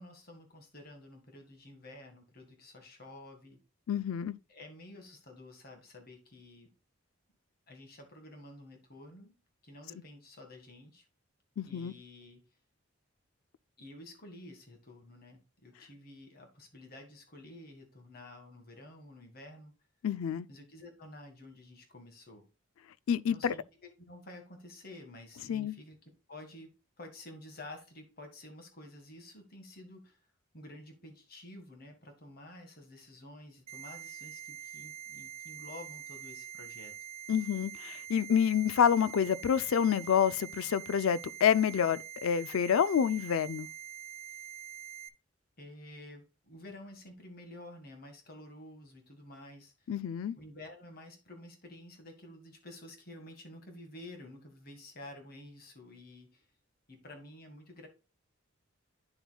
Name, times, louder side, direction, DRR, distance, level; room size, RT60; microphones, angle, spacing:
voice 1, 0.0-3.6 4.5-6.7 7.7-9.3 9.6-11.1 11.7-12.4 13.8-19.7 20.5-22.5 23.3-26.0 26.3-26.7 27.0-30.2 30.5-36.9 45.6-49.9 50.4-56.5 56.9-57.9, left 1 dB, 45° left, 1.8 m, -50 dB
voice 2, 3.9-4.3 11.6-11.9 20.0-20.5 23.1-23.5 25.5-25.7 37.3-43.7 49.9-50.3, left 8 dB, 80° left, 0.4 m, -28 dB
sound 1, 33.7-45.1, right 10 dB, 30° right, 0.6 m, -45 dB
8.9 x 6.9 x 2.3 m
head